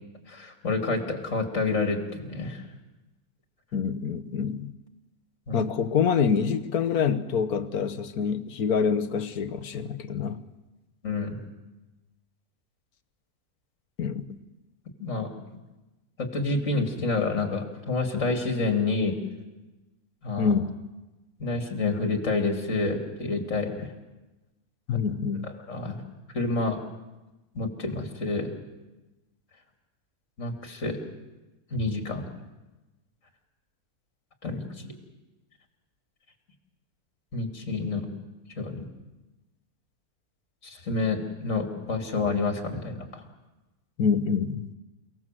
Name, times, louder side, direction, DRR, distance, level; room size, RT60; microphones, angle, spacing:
voice 1, 0.3-2.6 5.5-5.7 11.0-11.4 15.0-15.3 16.2-19.2 20.2-20.5 21.4-23.9 24.9-25.0 25.4-26.0 26.3-26.8 27.5-28.5 30.4-31.0 31.7-32.2 34.4-34.9 37.3-38.1 38.6-38.9 40.6-43.2, left 3 dB, 55° left, 3.2 m, -28 dB
voice 2, 3.7-4.7 5.5-10.4 14.0-14.2 20.4-20.7 24.9-25.5 44.0-44.7, left 6 dB, 85° left, 1.6 m, -26 dB
29.5 x 18.0 x 7.6 m
omnidirectional pair, 1.5 m